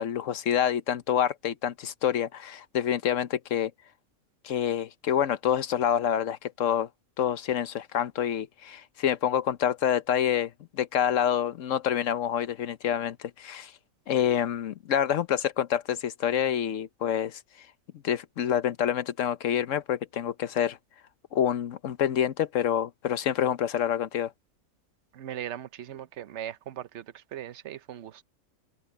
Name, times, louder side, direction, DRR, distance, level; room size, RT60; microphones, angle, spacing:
voice 1, 0.0-3.7 4.4-6.9 7.2-13.7 14.1-17.4 18.0-20.8 21.3-24.3, left 9 dB, 70° left, 1.2 m, -27 dB
voice 2, 25.1-28.2, right 10 dB, 60° right, 1.0 m, -39 dB
omnidirectional pair, 1.4 m